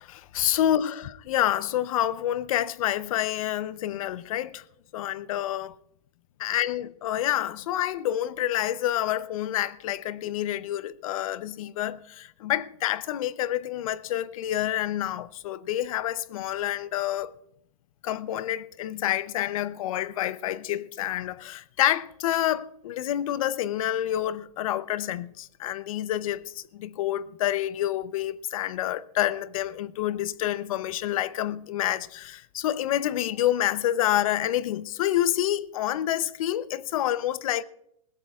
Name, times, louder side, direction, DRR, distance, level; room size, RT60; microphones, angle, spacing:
voice 1, 0.0-4.6 4.9-5.8 6.4-17.4 18.0-37.6, left 12 dB, 65° left, 0.7 m, -28 dB
20.0 x 16.5 x 2.4 m
hypercardioid pair, 135°, 19 cm